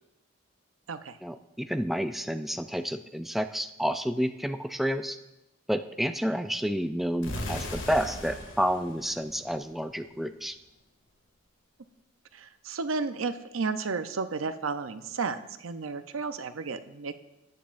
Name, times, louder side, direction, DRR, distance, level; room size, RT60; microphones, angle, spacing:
voice 1, 1.2-5.2 5.7-10.6, equal, ahead, 8 dB, 0.3 m, -30 dB
sound 1, 7.2-10.1, left 1 dB, 65° left, 2.1 m, -38 dB
voice 2, 12.3-17.2, right 4 dB, 85° right, 10 dB, 0.6 m, -33 dB
20.0 x 9.4 x 2.5 m, 0.95 s
head